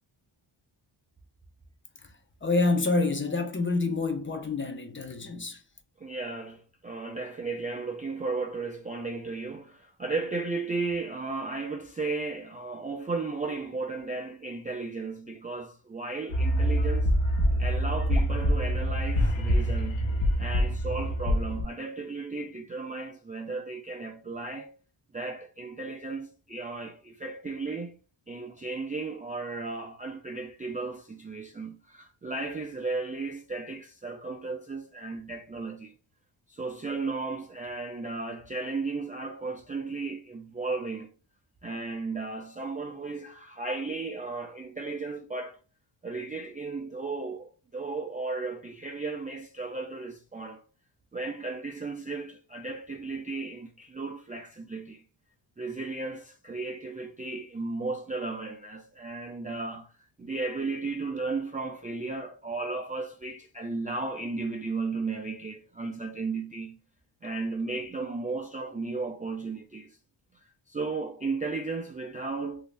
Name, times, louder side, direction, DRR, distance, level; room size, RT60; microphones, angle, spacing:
voice 1, 2.4-5.6, left 3 dB, 25° left, 0.6 m, -27 dB
voice 2, 6.0-17.1 17.6-20.1 20.4-24.7 25.1-28.0 28.3-35.9 36.5-41.1 41.6-45.6 46.0-50.6 51.1-55.0 55.6-59.9 60.2-66.8 67.2-70.0 70.7-72.6, right 3 dB, 20° right, 0.3 m, -35 dB
sound 1, 16.3-21.6, equal, 70° left, 1.0 m, -25 dB
3.0 x 2.7 x 3.2 m
wide cardioid pair, 100°, 48 cm